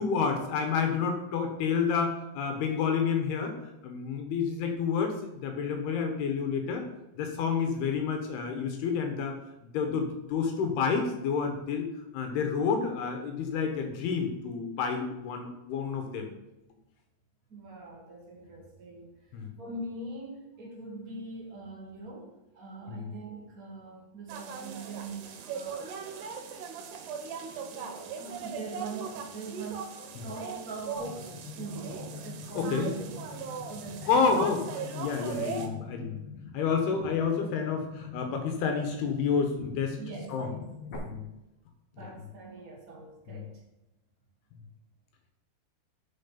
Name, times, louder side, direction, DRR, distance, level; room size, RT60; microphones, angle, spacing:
voice 1, 0.0-3.6 3.8-6.9 7.2-9.4 9.7-11.9 12.1-16.3 19.3-19.5 22.9-23.1 30.2-30.3 32.5-32.9 34.1-34.6 34.9-36.2 36.5-40.0 40.3-40.5 41.0-41.3 43.3-43.4, left 5 dB, 75° left, 4 dB, 2.9 m, -29 dB
voice 2, 17.5-25.9 27.5-33.2 33.7-34.1 40.0-40.9 41.9-43.6, right 3 dB, 50° right, -3 dB, 1.0 m, -42 dB
sound 1, 24.3-35.7, right 6 dB, 75° right, 3.1 m, -39 dB
sound 2, 31.0-41.0, left 5 dB, 50° left, 2.2 m, -45 dB
7.1 x 6.6 x 5.7 m, 0.96 s
omnidirectional pair, 4.8 m